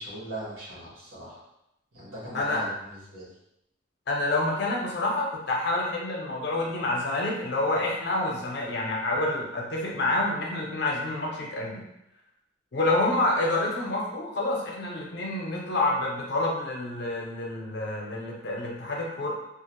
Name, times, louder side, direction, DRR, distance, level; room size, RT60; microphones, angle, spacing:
voice 1, 0.0-1.4 1.9-3.3, right 1 dB, 85° right, -8 dB, 1.1 m, -39 dB
voice 2, 4.1-11.8 12.7-19.3, left 2 dB, 55° left, -2 dB, 0.5 m, -28 dB
2.4 x 2.1 x 2.9 m, 0.86 s
head